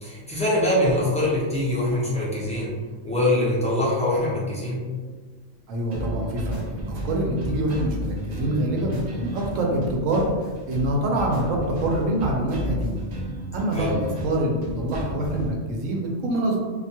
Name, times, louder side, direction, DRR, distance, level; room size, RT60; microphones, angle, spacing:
voice 1, 0.0-2.8 3.0-4.9 13.7-13.9, left 1 dB, 10° left, -9 dB, 0.4 m, -23 dB
voice 2, 5.7-10.3 10.7-13.0 13.5-16.6, right 1 dB, 90° right, -1 dB, 1.0 m, -25 dB
sound 1, 5.9-15.5, equal, 55° right, 0.4 m, -32 dB
2.4 x 2.2 x 2.7 m, 1.5 s
omnidirectional pair, 1.3 m